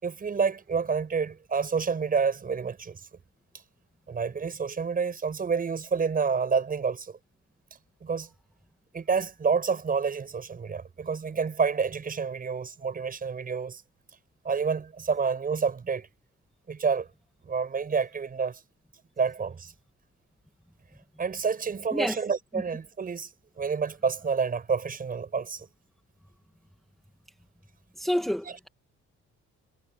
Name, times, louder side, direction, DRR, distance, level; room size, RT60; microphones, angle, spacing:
voice 1, 0.0-3.0 4.1-7.2 8.0-8.3 8.9-13.8 14.4-16.1 16.7-17.1 17.4-18.6 19.2-19.7 21.2-23.3 23.6-25.7, right 5 dB, 30° right, 6.7 m, -28 dB
voice 2, 28.0-28.7, equal, ahead, 1.5 m, -28 dB
cardioid pair, 150°, 29 cm